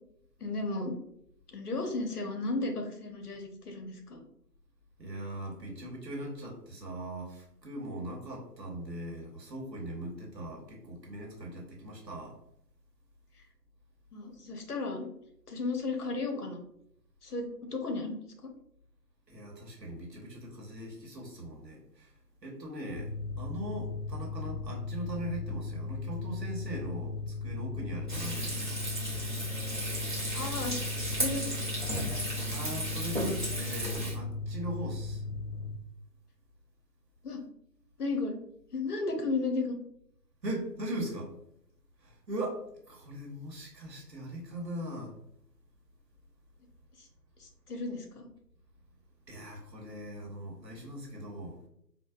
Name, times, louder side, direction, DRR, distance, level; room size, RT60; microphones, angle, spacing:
voice 1, 0.4-1.0 1.5-4.2 14.1-15.1 15.5-16.6 17.2-18.5 30.3-30.8 31.1-31.7 37.2-37.4 38.0-38.4 38.7-39.8 47.0-47.1 47.4-48.3, left 3 dB, 65° left, 4 dB, 0.8 m, -34 dB
voice 2, 5.0-12.4 19.3-22.1 22.4-23.1 23.4-28.8 32.5-35.2 40.4-41.3 42.0-45.1 49.3-51.6, right 1 dB, 80° right, -1 dB, 1.2 m, -40 dB
Mechanical fan, 22.9-35.7, left 3 dB, 20° left, 0.8 m, -37 dB
Frying (food), 28.1-34.1, right 1 dB, 30° right, 0.6 m, -35 dB
4.6 x 2.2 x 2.3 m, 0.75 s
figure-of-eight pair, 150°, 49 cm